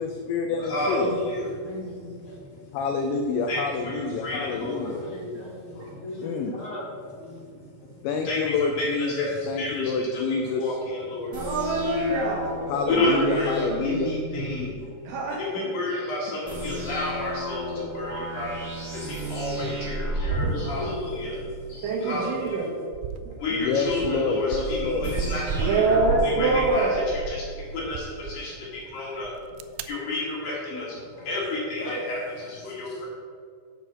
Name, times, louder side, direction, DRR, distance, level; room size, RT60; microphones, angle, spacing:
voice 1, 0.0-1.1 2.7-5.0 6.2-6.5 8.0-10.8 12.7-14.1 23.5-25.1, left 4 dB, 80° left, 4 dB, 2.6 m, -27 dB
voice 2, 0.7-1.4 3.5-3.6 3.8-5.0 5.9-6.0 7.8-7.9 8.2-8.4 8.8-9.3 9.6-10.2 10.6-11.3 12.9-14.9 15.3-18.6 18.9-21.4 21.7-22.6 23.4-25.8 26.2-29.3 29.8-32.2 32.4-33.1, left 2 dB, 55° left, -5 dB, 3.2 m, -30 dB
voice 3, 1.6-2.4 4.4-4.6 5.0-7.7 20.6-21.3 31.8-32.0 32.7-33.0, left 2 dB, 35° left, -5 dB, 2.3 m, -38 dB
sound 1, 11.3-14.6 16.5-21.7 25.0-27.7, right 1 dB, 40° right, 1.1 m, -33 dB
voice 4, 11.3-12.5 15.0-15.7 18.2-18.3 21.8-22.7 25.6-27.0, right 2 dB, 65° right, -4 dB, 2.2 m, -24 dB
sound 2, 22.4-22.6 22.9-27.5 27.8-28.4 29.2-29.8, right 7 dB, 90° right, 3.3 m, -33 dB
8.1 x 6.9 x 7.5 m, 2.1 s
omnidirectional pair, 5.9 m